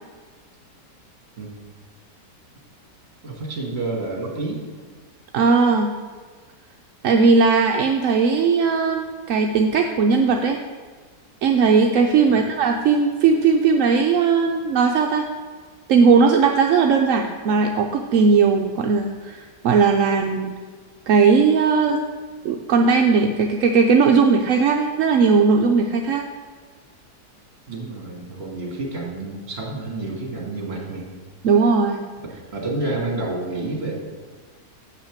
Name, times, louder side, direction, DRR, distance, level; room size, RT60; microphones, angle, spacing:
voice 1, 3.2-4.6 12.3-12.4 27.7-31.1 32.2-33.9, right 2 dB, 35° right, -1 dB, 2.2 m, -29 dB
voice 2, 5.3-5.9 7.0-10.6 11.4-15.2 15.9-20.5 21.1-22.0 22.4-26.2 31.4-32.0, right 5 dB, 65° right, 3 dB, 0.8 m, -18 dB
7.5 x 5.9 x 7.3 m, 1.5 s
omnidirectional pair, 1.8 m